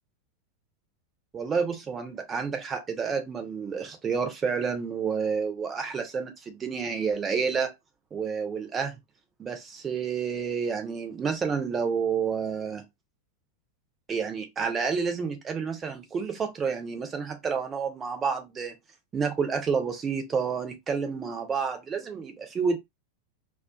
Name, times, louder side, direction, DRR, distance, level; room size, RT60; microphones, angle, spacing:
voice 1, 1.3-7.7 8.1-8.9 9.4-12.8 14.1-18.7 19.1-22.8, right 6 dB, 20° right, 0.6 m, -29 dB
2.4 x 2.4 x 2.2 m
figure-of-eight pair, 90°, 0 cm